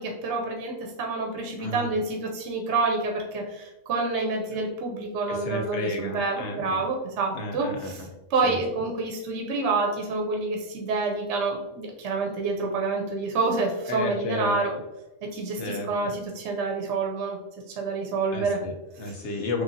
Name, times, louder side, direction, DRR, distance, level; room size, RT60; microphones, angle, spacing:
voice 1, 0.0-8.0 8.3-14.7 15.3-17.4 17.8-18.6 19.1-19.2, right 3 dB, 70° right, 1 dB, 0.9 m, -28 dB
voice 2, 1.6-1.9 5.3-6.8 7.3-8.1 8.4-8.6 13.9-14.6 15.6-16.1 18.3-19.6, left 2 dB, 70° left, 2 dB, 0.8 m, -32 dB
3.1 x 2.3 x 2.5 m, 1.0 s
omnidirectional pair, 1.3 m